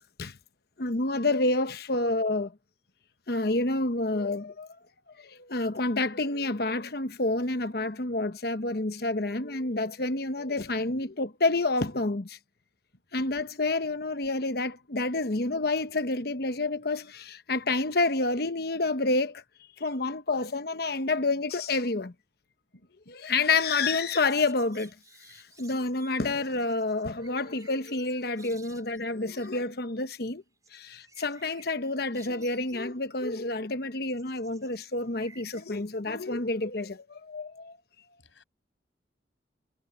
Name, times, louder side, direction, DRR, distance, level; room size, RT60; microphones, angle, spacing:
voice 1, 0.8-2.5 3.3-4.7 5.2-12.4 13.1-19.4 19.8-22.1 23.1-24.9 25.3-30.4 30.7-37.8, left 2 dB, 55° left, 1.0 m, -29 dB
sound 1, 23.4-29.5 30.6-32.9 34.1-35.7, right 4 dB, 20° right, 4.6 m, -56 dB
voice 2, 28.5-28.8 38.2-38.4, left 1 dB, 90° left, 7.6 m, -56 dB
head